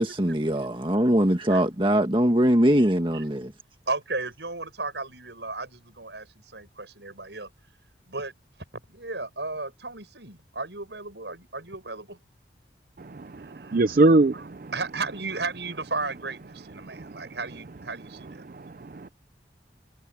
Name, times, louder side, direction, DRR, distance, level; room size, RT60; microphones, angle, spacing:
voice 1, 0.0-3.5, equal, 30° right, 1.7 m, -22 dB
voice 2, 3.9-7.5 8.1-8.3 8.9-12.2 13.4-13.8 14.3-14.4 14.7-18.4, right 3 dB, 75° right, 7.7 m, -34 dB
voice 3, 13.0-14.7 16.8-17.2 18.4-19.1, right 2 dB, 50° right, 0.5 m, -24 dB
head